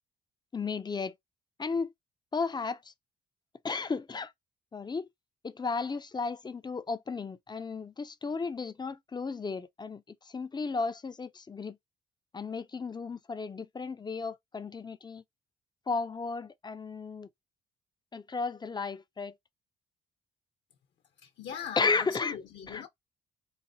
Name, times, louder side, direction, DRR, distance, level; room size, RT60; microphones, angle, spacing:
voice 1, 0.5-1.1 1.6-1.9 2.3-2.9 3.6-4.3 4.7-5.1 5.4-11.8 12.3-15.2 15.9-17.3 18.1-19.3 21.8-22.3 22.7-22.8, left 4 dB, 20° left, 0.4 m, -34 dB
voice 2, 21.2-22.9, left 8 dB, 65° left, 0.9 m, -40 dB
4.0 x 2.1 x 2.7 m
cardioid pair, 90°, 20 cm